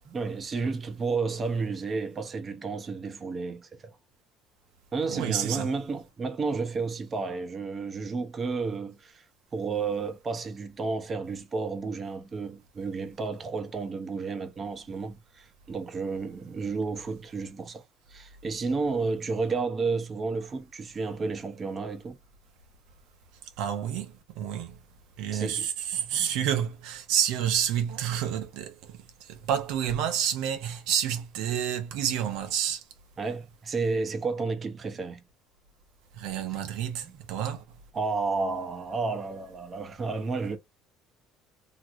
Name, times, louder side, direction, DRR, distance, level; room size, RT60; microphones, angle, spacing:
voice 1, 0.1-4.0 4.9-9.2 9.5-17.8 18.1-22.2 25.3-25.7 33.2-35.2 36.5-36.7 37.0-37.2 37.9-40.6, right 4 dB, 25° right, 0.7 m, -31 dB
voice 2, 5.1-5.7 23.6-24.8 25.2-32.8 36.2-37.6, right 9 dB, 80° right, 0.8 m, -29 dB
3.0 x 2.9 x 2.5 m
cardioid pair, 135°, 0 cm